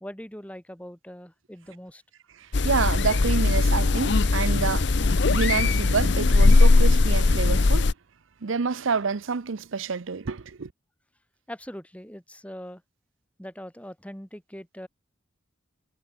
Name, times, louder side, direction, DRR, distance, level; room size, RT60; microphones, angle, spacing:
voice 1, 0.0-2.0 11.5-12.8 13.4-14.9, equal, 5° left, 2.3 m, -41 dB
voice 2, 2.4-7.9 8.4-10.7, right 5 dB, 70° right, 0.7 m, -28 dB
sound 1, 2.5-7.9, left 3 dB, 55° left, 0.7 m, -19 dB
head